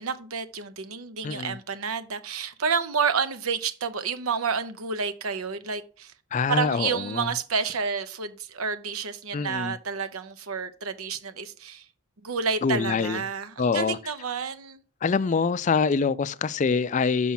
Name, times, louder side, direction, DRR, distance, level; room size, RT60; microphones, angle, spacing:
voice 1, 0.0-6.1 6.5-11.8 12.2-14.8, right 5 dB, 80° right, 0.8 m, -30 dB
voice 2, 1.2-1.6 6.3-7.3 9.3-9.8 12.6-13.2 13.6-14.0 15.0-17.3, left 5 dB, 35° left, 0.3 m, -25 dB
6.2 x 5.8 x 5.7 m
head